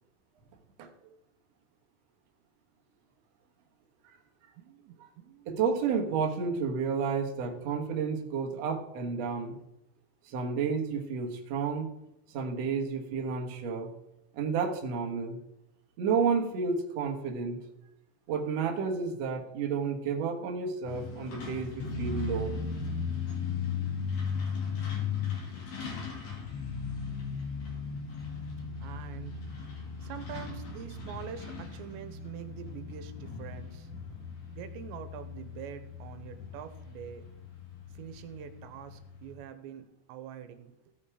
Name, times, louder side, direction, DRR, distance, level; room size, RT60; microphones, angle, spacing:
voice 1, 4.6-5.6 28.8-29.4 30.0-33.9 34.5-37.3 37.9-40.9, right 9 dB, 85° right, 9 dB, 3.0 m, -45 dB
voice 2, 5.5-9.6 10.3-11.9 12.3-13.9 14.3-15.4 16.0-17.6 18.3-22.5, right 5 dB, 60° right, 2 dB, 1.8 m, -31 dB
Truck, 20.8-39.3, left 5 dB, 50° left, 3.8 m, -37 dB
16.5 x 5.5 x 4.9 m, 0.87 s
omnidirectional pair, 5.1 m